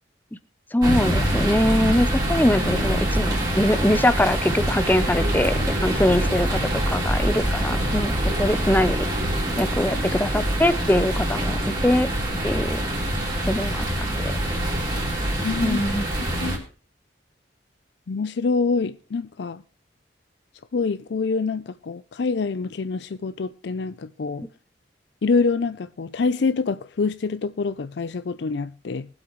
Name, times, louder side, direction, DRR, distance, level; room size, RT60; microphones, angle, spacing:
voice 1, 0.7-9.0 9.6-12.1 12.4-12.8 13.5-14.3 15.6-16.1, left 1 dB, 10° left, 0.5 m, -22 dB
sound 1, 0.8-16.6, right 1 dB, 20° right, 3.2 m, -25 dB
voice 2, 15.4-15.8 16.2-16.6 18.1-19.6 20.7-24.4 25.2-29.1, left 4 dB, 65° left, 0.4 m, -26 dB
21.5 x 8.0 x 3.0 m
head